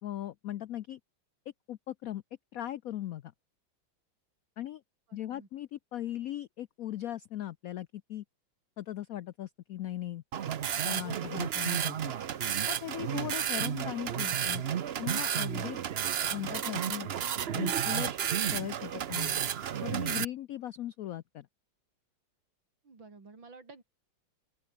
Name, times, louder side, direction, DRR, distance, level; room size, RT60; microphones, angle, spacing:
voice 1, 0.0-1.0 1.7-2.2 2.5-3.3 4.6-4.8 5.1-8.2 8.8-10.2 10.8-12.1 12.7-14.6 15.0-15.8 16.3-17.1 17.5-18.1 18.5-19.4 19.8-21.5, left 12 dB, 80° left, 0.7 m, -38 dB
voice 2, 5.1-5.5 22.8-23.8, right 4 dB, 70° right, 4.9 m, -52 dB
sound 1, 10.3-20.2, right 9 dB, 90° right, 0.5 m, -32 dB
open air
omnidirectional pair, 2.2 m